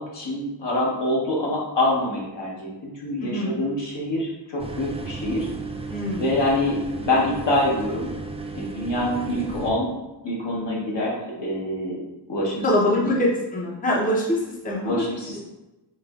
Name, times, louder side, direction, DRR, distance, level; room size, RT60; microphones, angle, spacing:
voice 1, 0.0-5.5 6.2-8.1 8.5-9.9 10.2-12.0 12.3-12.7 13.0-13.1 14.8-15.4, left 1 dB, 70° left, -5 dB, 1.2 m, -25 dB
voice 2, 3.2-3.6 5.9-6.2 12.6-15.0, left 1 dB, 20° left, -3 dB, 0.7 m, -23 dB
sound 1, 4.6-9.7, right 3 dB, 15° right, 0.4 m, -34 dB
4.7 x 2.3 x 2.4 m, 1.0 s
wide cardioid pair, 65°, 45 cm